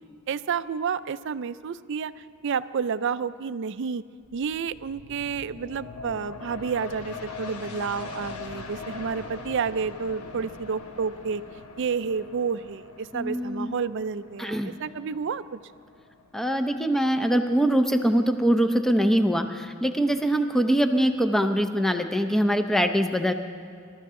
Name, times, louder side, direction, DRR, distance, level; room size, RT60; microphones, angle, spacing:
voice 1, 0.3-4.0 4.3-11.4 11.8-15.6, right 6 dB, 55° right, 14 dB, 0.4 m, -30 dB
sound 1, 4.2-17.5 17.9-18.0, left 4 dB, 90° left, 1.1 m, -42 dB
voice 2, 13.1-13.7 14.4-14.7 16.3-23.3, equal, ahead, 7 dB, 0.6 m, -23 dB
24.5 x 13.5 x 3.7 m, 2.3 s
head